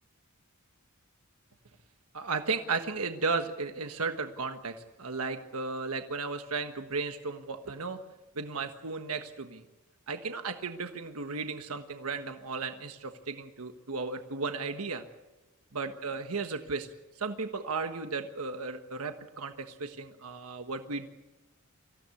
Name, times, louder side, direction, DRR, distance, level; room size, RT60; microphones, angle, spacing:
voice 1, 2.1-8.0 8.3-9.6 10.1-15.0 15.7-16.9 17.2-21.1, right 4 dB, 85° right, 6 dB, 1.4 m, -35 dB
25.5 x 16.0 x 8.5 m, 1.1 s
head